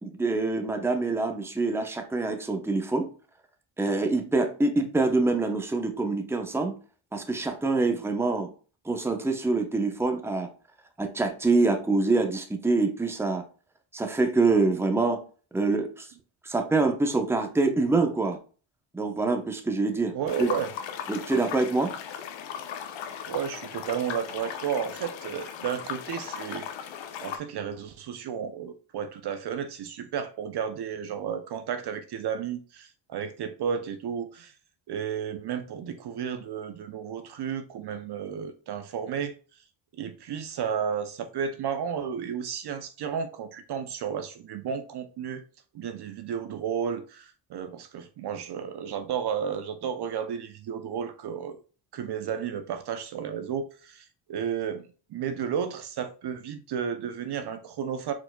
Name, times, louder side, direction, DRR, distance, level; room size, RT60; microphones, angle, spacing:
voice 1, 0.0-3.1 3.8-6.8 7.1-8.5 8.8-10.5 11.0-13.4 13.9-15.2 15.5-16.1 16.4-18.4 18.9-20.5 21.1-21.9, right 3 dB, 5° right, 0.7 m, -25 dB
voice 2, 20.1-20.7 23.2-26.7 27.2-34.5 34.9-39.3 39.9-45.4 45.7-51.6 51.9-58.1, right 7 dB, 55° right, 0.6 m, -32 dB
sound 1, 20.3-27.4, left 8 dB, 65° left, 0.8 m, -37 dB
4.5 x 4.1 x 2.2 m
cardioid pair, 80°, 49 cm